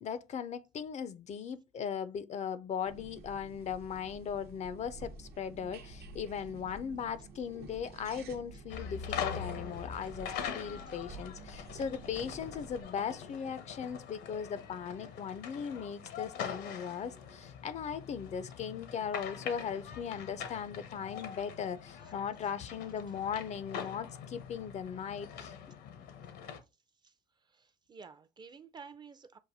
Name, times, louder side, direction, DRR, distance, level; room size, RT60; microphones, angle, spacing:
voice 1, 0.0-25.5, left 7 dB, 40° left, 0.4 m, -38 dB
sound 1, 2.9-12.8, right 3 dB, 70° right, 0.8 m, -50 dB
sound 2, 8.7-26.6, left 7 dB, 85° left, 0.8 m, -43 dB
voice 2, 26.9-29.4, right 5 dB, 25° right, 0.4 m, -53 dB
6.3 x 2.5 x 2.6 m
cardioid pair, 110°, 17 cm